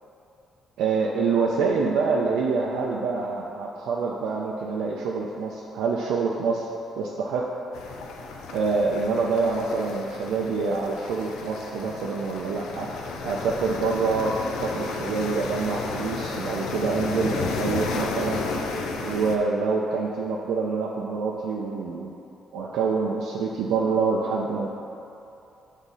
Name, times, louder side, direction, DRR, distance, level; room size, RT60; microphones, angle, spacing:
voice 1, 0.8-6.7 7.0-7.5 8.5-13.0 13.2-18.4 19.0-22.2 22.5-24.7, right 4 dB, 85° right, -2 dB, 0.4 m, -26 dB
sound 1, 7.7-19.4, left 4 dB, 90° left, 0.5 m, -33 dB
7.2 x 3.6 x 4.0 m, 2.8 s
cardioid pair, 90°, 0 cm